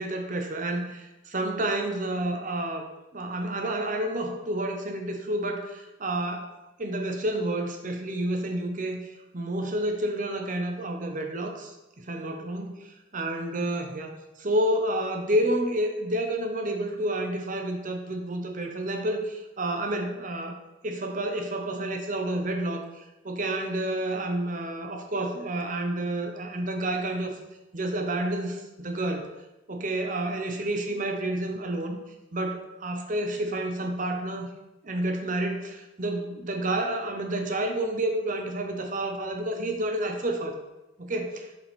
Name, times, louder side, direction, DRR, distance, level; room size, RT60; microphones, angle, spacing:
voice 1, 0.0-2.8 3.1-6.5 6.8-14.1 14.4-20.5 20.8-27.3 27.7-29.3 29.7-32.0 32.3-34.5 34.8-40.5 41.0-41.5, right 1 dB, 40° right, 4 dB, 0.8 m, -29 dB
6.6 x 5.3 x 3.7 m, 1.0 s
head